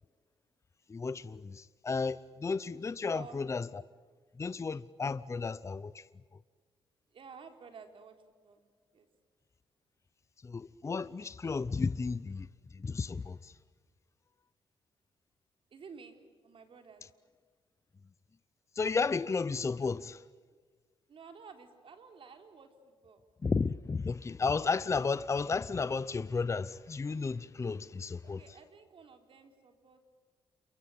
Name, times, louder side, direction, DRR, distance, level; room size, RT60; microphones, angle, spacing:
voice 1, 0.9-3.8 4.4-6.0 10.4-12.5 12.8-13.5 18.8-20.2 23.4-28.4, left 4 dB, 30° left, 0.7 m, -33 dB
voice 2, 3.1-3.4 7.1-8.2 8.4-8.6 8.9-9.1 15.7-16.2 16.4-17.0 21.1-23.2 28.2-30.1, right 5 dB, 60° right, 3.8 m, -52 dB
28.5 x 23.5 x 8.5 m
cardioid pair, 95°, 10 cm